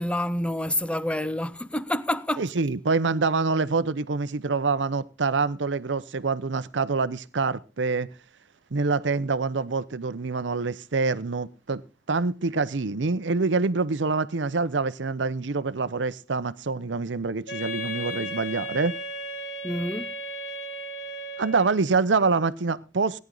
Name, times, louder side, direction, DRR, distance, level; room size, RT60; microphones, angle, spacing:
voice 1, 0.0-2.4 19.6-20.1, left 1 dB, 5° left, 0.6 m, -28 dB
voice 2, 2.4-8.1 8.7-11.8 12.1-18.9 21.4-23.2, right 4 dB, 85° right, 0.7 m, -26 dB
Wind instrument woodwind instrument, 17.5-21.9, equal, 80° left, 5.4 m, -35 dB
17.5 x 10.5 x 3.9 m
head